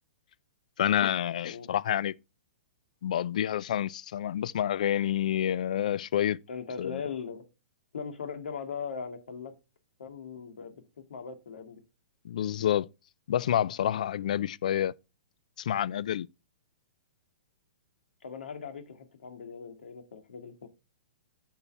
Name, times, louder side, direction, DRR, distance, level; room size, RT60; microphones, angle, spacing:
voice 1, 0.8-2.1 3.0-6.4 6.8-7.0 12.2-12.9 13.3-14.9 15.6-16.3, left 10 dB, 45° left, 0.3 m, -28 dB
voice 2, 6.5-7.4 7.9-9.5 10.0-11.8 14.2-14.4 18.2-20.7, left 6 dB, 80° left, 1.9 m, -40 dB
8.5 x 5.5 x 3.4 m
hypercardioid pair, 180°, 6 cm